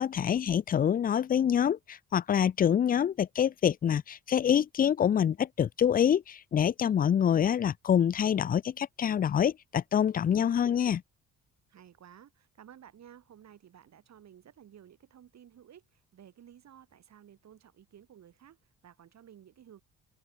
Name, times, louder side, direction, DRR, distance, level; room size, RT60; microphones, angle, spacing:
voice 1, 0.0-11.0, left 9 dB, 30° left, 0.4 m, -26 dB
voice 2, 11.7-19.8, right 9 dB, 60° right, 6.3 m, -55 dB
open air
cardioid pair, 90°, 30 cm